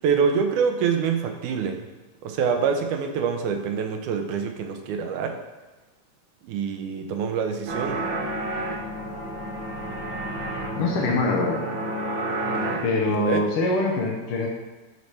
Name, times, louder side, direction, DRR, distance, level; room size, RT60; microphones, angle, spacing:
voice 1, 0.0-1.8 2.2-5.4 6.5-8.0 13.1-13.5, right 6 dB, 90° right, 5 dB, 2.1 m, -25 dB
sound 1, 7.7-12.8, right 1 dB, 70° right, 1.1 m, -30 dB
voice 2, 10.8-11.6 12.8-14.5, left 3 dB, 70° left, 0 dB, 1.3 m, -24 dB
12.0 x 4.1 x 3.3 m, 1.2 s
omnidirectional pair, 3.5 m